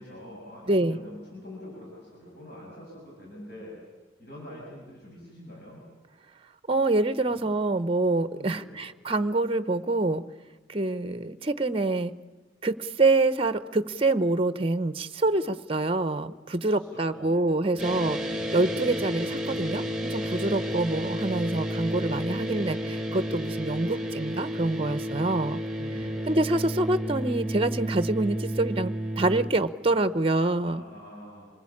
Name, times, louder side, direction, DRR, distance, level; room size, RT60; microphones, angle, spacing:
voice 1, 0.0-3.7 4.2-5.8 7.3-7.5 8.4-8.8 16.7-18.2 20.4-20.6 25.8-26.3 30.6-31.5, left 1 dB, 55° left, -4 dB, 7.5 m, -45 dB
voice 2, 0.7-1.0 6.7-10.2 10.7-12.1 12.6-18.2 18.5-25.6 26.3-30.8, right 2 dB, 30° right, 13 dB, 0.8 m, -26 dB
sound 1, 17.8-29.5, equal, 5° right, 1.7 m, -31 dB
26.5 x 20.0 x 8.7 m, 1.2 s
head